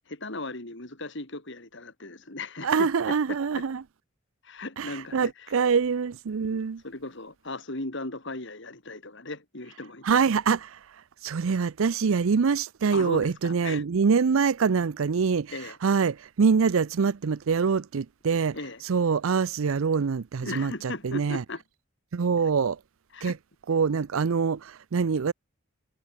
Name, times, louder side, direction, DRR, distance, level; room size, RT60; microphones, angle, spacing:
voice 1, 0.1-2.9 3.3-3.6 4.4-5.3 6.5-10.2 12.9-13.8 15.5-15.7 18.5-18.8 20.4-21.6 23.1-23.4, left 2 dB, 60° left, 3.4 m, -37 dB
voice 2, 2.6-3.8 4.8-6.8 10.0-10.8 11.2-18.6 18.8-21.4 22.1-22.8 23.2-23.4 23.7-25.3, right 5 dB, 75° right, 0.5 m, -25 dB
head